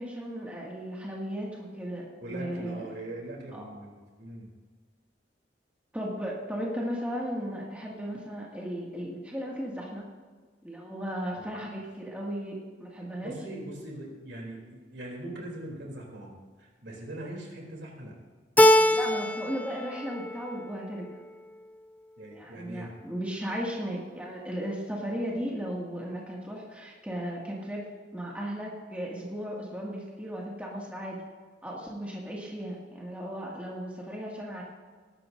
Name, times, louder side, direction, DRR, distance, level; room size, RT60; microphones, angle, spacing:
voice 1, 0.0-2.8 3.5-3.7 5.9-10.1 10.6-13.3 18.9-21.1 22.3-31.2 31.6-34.6, equal, 10° right, -4 dB, 2.0 m, -36 dB
voice 2, 2.2-4.5 11.3-11.5 13.2-18.2 22.2-22.9, right 1 dB, 70° right, -1 dB, 3.2 m, -41 dB
Keyboard (musical), 18.6-19.7 20.0-20.7, left 1 dB, 10° left, 0.4 m, -22 dB
19.0 x 12.0 x 2.6 m, 1.5 s
head